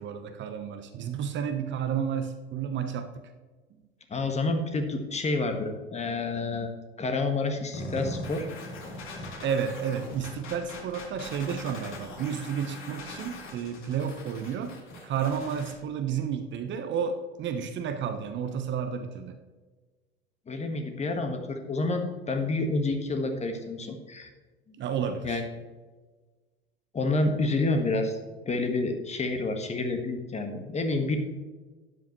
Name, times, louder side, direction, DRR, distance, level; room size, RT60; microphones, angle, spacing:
voice 1, 0.0-3.1 9.4-14.8 15.0-19.4 24.8-25.4, right 7 dB, 35° right, 7 dB, 1.1 m, -31 dB
voice 2, 4.1-6.7 7.0-8.5 20.5-24.3 25.2-25.4 26.9-28.2 28.4-31.2, left 2 dB, 20° left, 5 dB, 1.5 m, -29 dB
sound 1, 7.7-15.7, left 1 dB, 40° left, 3.0 m, -41 dB
12.5 x 9.3 x 3.1 m, 1.3 s
figure-of-eight pair, 80°, 32 cm